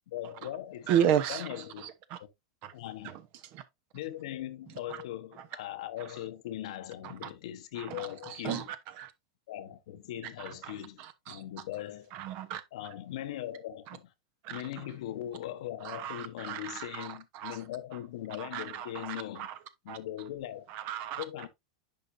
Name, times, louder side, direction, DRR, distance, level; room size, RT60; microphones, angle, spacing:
voice 1, 0.1-1.9 2.7-3.1 3.9-8.7 9.5-12.1 12.7-14.1 14.5-19.5 19.8-20.7 21.2-21.5, left 12 dB, 65° left, 1.0 m, -40 dB
voice 2, 0.9-1.5 1.8-2.2 2.6-2.7 3.5-3.6 7.2-7.3 8.4-8.6 9.0-9.1 10.6-10.7 11.3-11.4 12.1-12.6 14.4-14.6 15.8-17.1 17.3-17.6 18.4-19.5 19.9-20.0 20.7-21.2, right 9 dB, 50° right, 1.0 m, -32 dB
10.5 x 4.0 x 2.6 m
hypercardioid pair, 95°, 4 cm